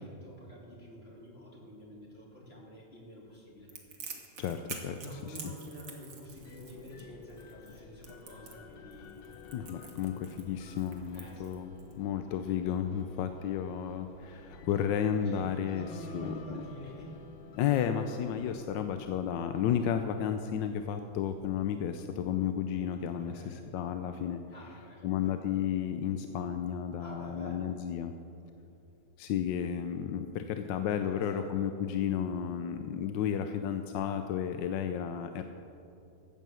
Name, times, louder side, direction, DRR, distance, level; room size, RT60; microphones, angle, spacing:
voice 1, 0.0-3.7 4.8-9.2 11.1-11.5 15.2-17.2 23.2-23.7 24.5-25.3 27.0-27.8 30.9-31.6, equal, 35° left, -3 dB, 3.2 m, -48 dB
Crackle, 3.7-11.9, right 5 dB, 65° right, 2.0 m, -47 dB
voice 2, 4.1-5.3 9.5-15.9 16.1-16.3 17.6-24.4 25.0-28.1 29.2-35.4, left 8 dB, 85° left, 8 dB, 1.3 m, -32 dB
sound 1, 6.3-22.8, left 6 dB, 70° left, 0.5 m, -54 dB
14.0 x 9.2 x 7.6 m, 2.7 s
omnidirectional pair, 1.9 m